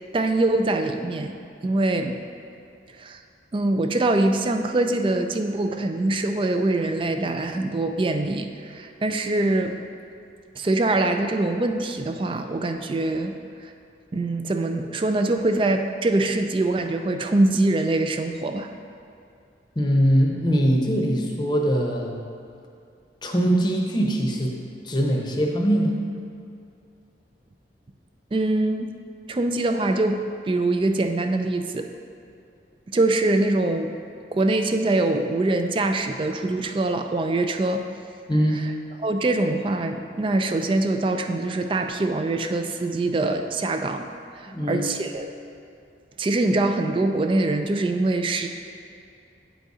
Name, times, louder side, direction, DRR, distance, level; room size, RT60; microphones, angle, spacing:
voice 1, 0.1-1.3 1.6-2.2 2.9-3.2 3.5-9.8 10.6-13.3 13.6-13.7 14.1-18.7 28.3-28.9 29.3-31.9 32.9-34.0 34.3-37.8 38.5-38.7 39.0-44.0 44.3-45.3 46.2-48.5, right 2 dB, 30° right, 6 dB, 0.3 m, -23 dB
voice 2, 19.8-22.1 23.2-24.5 24.8-26.0 38.3-38.6 44.5-44.9, equal, 25° left, 0 dB, 0.7 m, -22 dB
8.9 x 4.1 x 4.8 m, 2.5 s
head